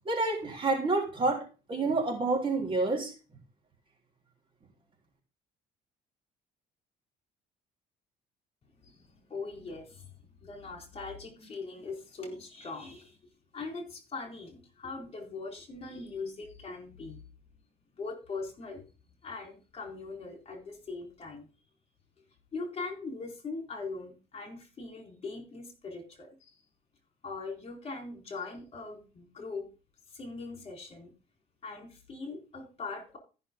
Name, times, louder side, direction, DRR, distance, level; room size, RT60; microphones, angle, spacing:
voice 1, 0.1-3.1, right 3 dB, 30° right, 3.7 m, -28 dB
voice 2, 8.8-10.1 10.4-13.2 13.5-17.2 18.0-18.8 19.2-21.5 22.5-26.5 27.2-29.6 30.1-31.1 31.6-33.2, left 3 dB, 35° left, 4.1 m, -41 dB
14.0 x 6.3 x 3.8 m
cardioid pair, 110°, 17 cm